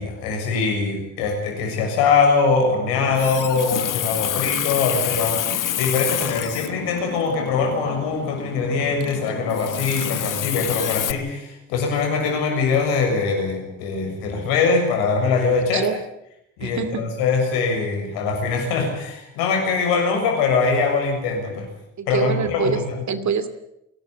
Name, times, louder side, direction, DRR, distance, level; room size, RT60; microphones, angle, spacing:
voice 1, 0.0-15.9 16.6-21.7 22.1-23.0, left 4 dB, 85° left, 3 dB, 6.9 m, -22 dB
Water tap faucet, 2.9-11.1, left 11 dB, 60° left, 1.5 m, -28 dB
voice 2, 5.2-5.6 15.7-16.0 16.6-17.0 22.0-22.8 23.1-23.5, right 6 dB, 50° right, 12 dB, 2.6 m, -26 dB
29.0 x 12.0 x 9.8 m, 0.82 s
hypercardioid pair, 60°, 36 cm